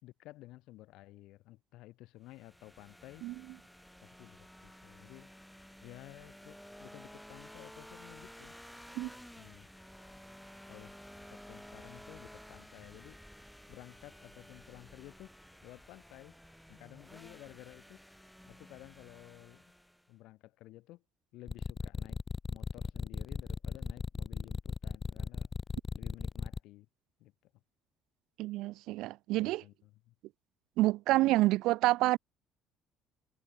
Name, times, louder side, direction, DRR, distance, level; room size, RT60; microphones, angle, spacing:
voice 1, 0.0-3.2 4.0-5.3 5.8-8.6 9.4-9.7 10.7-11.0 11.3-13.2 13.7-15.3 15.6-16.4 16.7-18.0 18.5-19.6 20.1-21.0 21.3-22.2 22.5-25.5 25.9-26.9 27.2-27.5 29.3-30.1 31.1-31.3, left 18 dB, 75° left, 4.5 m, -53 dB
sound 1, 2.3-20.1, equal, ahead, 5.6 m, -53 dB
sound 2, 21.5-26.6, left 5 dB, 30° left, 0.4 m, -36 dB
voice 2, 28.4-29.6 30.8-32.2, right 18 dB, 75° right, 0.4 m, -28 dB
supercardioid pair, 85°, 0 cm